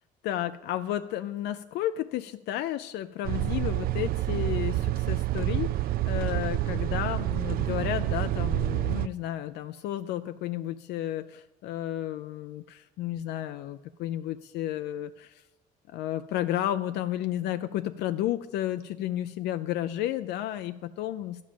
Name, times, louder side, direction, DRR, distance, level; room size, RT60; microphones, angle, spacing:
voice 1, 0.2-15.4 15.9-21.4, left 12 dB, 75° left, 10 dB, 0.4 m, -32 dB
sound 1, 3.2-9.1, right 15 dB, 60° right, 0.4 m, -28 dB
11.5 x 5.3 x 8.7 m, 1.1 s
cardioid pair, 110°, 17 cm